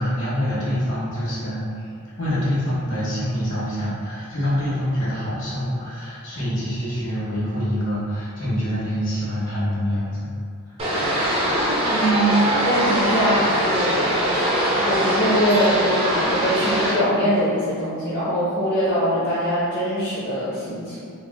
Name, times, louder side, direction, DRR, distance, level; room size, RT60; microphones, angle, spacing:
voice 1, 0.0-10.3 10.7-10.8, equal, 60° left, -9 dB, 1.1 m, -25 dB
sound 1, 10.8-16.9, right 1 dB, 25° right, 0.5 m, -22 dB
voice 2, 11.9-12.4 12.6-14.5 14.8-21.0, equal, 45° left, -12 dB, 0.7 m, -23 dB
3.2 x 2.3 x 2.3 m, 2.2 s
head